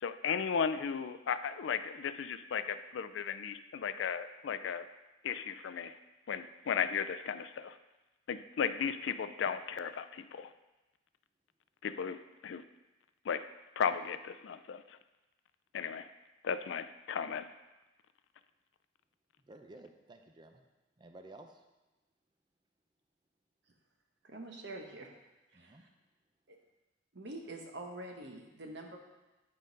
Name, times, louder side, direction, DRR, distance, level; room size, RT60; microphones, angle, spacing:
voice 1, 0.0-4.9 5.2-5.9 6.3-7.7 8.3-10.5 11.8-12.2 12.4-12.6 13.3-13.4 13.8-15.0 15.7-16.1 16.4-17.5, left 7 dB, 70° left, 11 dB, 0.4 m, -35 dB
voice 2, 19.4-20.6 21.0-21.6 25.5-25.8, right 2 dB, 25° right, 5 dB, 0.5 m, -53 dB
voice 3, 24.2-25.1 25.5-25.9 26.5-26.6 27.1-29.0, right 2 dB, 60° right, 2 dB, 1.0 m, -45 dB
9.6 x 3.9 x 5.2 m, 1.1 s
head